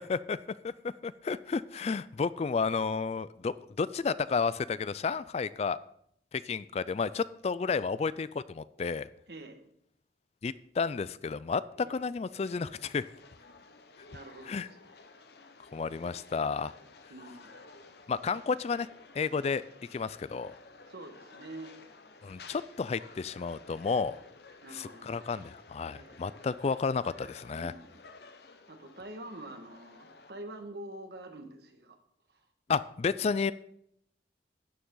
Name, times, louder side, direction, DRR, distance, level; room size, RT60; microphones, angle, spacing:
voice 1, 1.0-5.8 6.3-9.1 10.4-13.0 14.5-14.7 15.7-16.7 18.1-18.9 19.1-19.6 19.9-20.5 22.2-24.2 24.7-27.7 32.7-33.5, left 5 dB, 35° left, 17 dB, 0.3 m, -31 dB
voice 2, 9.3-9.6 11.7-12.0 14.1-14.9 17.1-17.6 20.9-21.7 24.6-25.2 25.9-26.2 27.5-28.0 28.7-32.0 32.3-32.4, right 1 dB, 60° right, 5 dB, 1.7 m, -46 dB
sound 1, 12.5-30.3, left 3 dB, 60° left, 1.0 m, -54 dB
12.5 x 9.6 x 3.8 m, 0.70 s
head